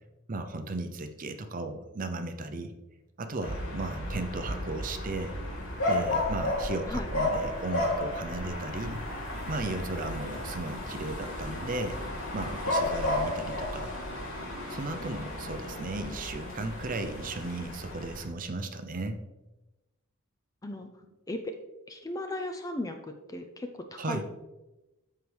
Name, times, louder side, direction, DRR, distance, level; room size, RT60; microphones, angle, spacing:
voice 1, 0.3-2.7 3.2-5.3 5.9-9.0 9.5-12.0 12.3-13.9 14.7-19.2 24.0-24.2, right 2 dB, 40° right, 7 dB, 0.6 m, -35 dB
sound 1, 3.4-18.2, left 1 dB, 85° left, 2.7 m, -33 dB
voice 2, 21.9-24.2, left 1 dB, 15° left, 5 dB, 0.5 m, -36 dB
13.0 x 4.7 x 3.4 m, 1.0 s
head